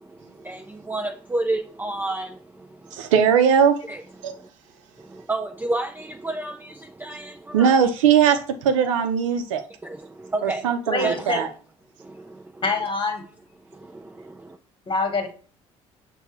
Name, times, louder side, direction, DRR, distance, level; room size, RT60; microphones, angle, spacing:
voice 1, 0.0-3.1 3.9-4.5 5.0-7.8 9.8-10.7 11.0-11.4 12.0-12.6 13.7-14.6, right 2 dB, 10° right, 0.4 m, -31 dB
voice 2, 2.9-3.8 4.2-4.3 7.5-9.6 10.4-11.5, right 7 dB, 85° right, 0.6 m, -19 dB
voice 3, 10.9-11.4 12.6-13.2 14.9-15.3, left 3 dB, 30° left, 1.3 m, -25 dB
6.5 x 2.2 x 3.0 m
hypercardioid pair, 55°, 16 cm